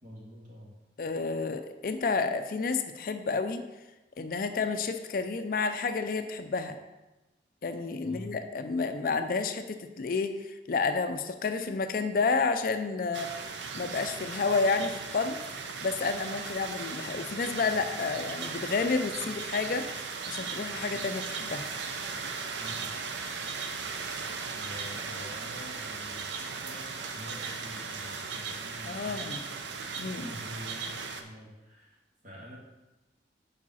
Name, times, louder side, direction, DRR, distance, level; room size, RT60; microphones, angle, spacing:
voice 1, 0.0-0.7 8.0-8.3 22.5-22.9 24.5-29.4 29.8-32.6, left 1 dB, 45° right, -5 dB, 2.0 m, -47 dB
voice 2, 1.0-3.6 4.2-6.8 7.6-13.3 13.7-15.4 15.8-21.7 28.9-29.4 30.0-30.3, left 4 dB, 50° left, 8 dB, 0.4 m, -30 dB
sound 1, 13.1-31.2, right 5 dB, 80° right, 0.6 m, -37 dB
4.9 x 4.8 x 5.6 m, 1.1 s
head